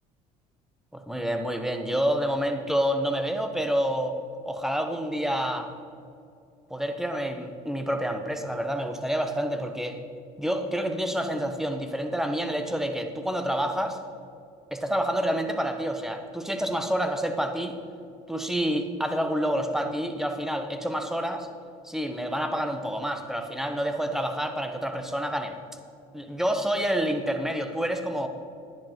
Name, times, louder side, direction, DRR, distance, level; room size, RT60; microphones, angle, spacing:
voice 1, 0.9-4.1 4.4-5.7 6.7-10.0 10.4-14.0 14.7-17.8 18.3-21.5 21.8-25.6 26.1-28.3, equal, ahead, 5 dB, 1.3 m, -28 dB
10.5 x 10.5 x 4.6 m, 2.5 s
supercardioid pair, 75°, 18 cm